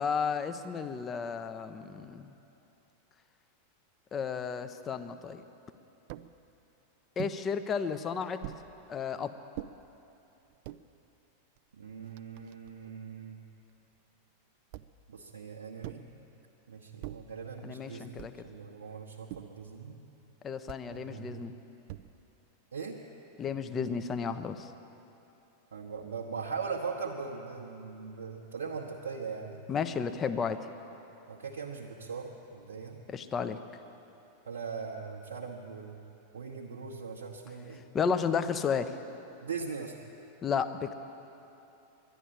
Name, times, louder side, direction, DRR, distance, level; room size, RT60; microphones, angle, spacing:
voice 1, 0.0-2.3 4.1-5.4 7.2-8.4 8.9-9.4 17.6-18.3 20.4-21.5 23.4-24.7 29.7-30.6 33.1-33.6 37.9-39.0 40.4-40.9, left 6 dB, 25° left, 10 dB, 0.7 m, -32 dB
sound 1, 6.1-6.3 7.2-7.4 8.4-8.7 9.5-9.7 10.5-10.8 11.6-11.7 11.9-12.9 14.7-15.1 15.8-16.1 17.0-17.3 18.2-18.5 19.3-19.6 20.7-20.9 21.9-22.3, right 15 dB, 45° right, 0.4 m, -44 dB
voice 2, 11.8-13.4 15.1-16.1 16.7-20.0 20.9-21.5 22.7-23.0 25.7-29.6 31.3-33.0 34.5-36.0 36.3-37.8 39.4-39.9, right 5 dB, 65° right, -2 dB, 1.1 m, -40 dB
11.5 x 11.0 x 9.9 m, 3.0 s
figure-of-eight pair, 90°, 0 cm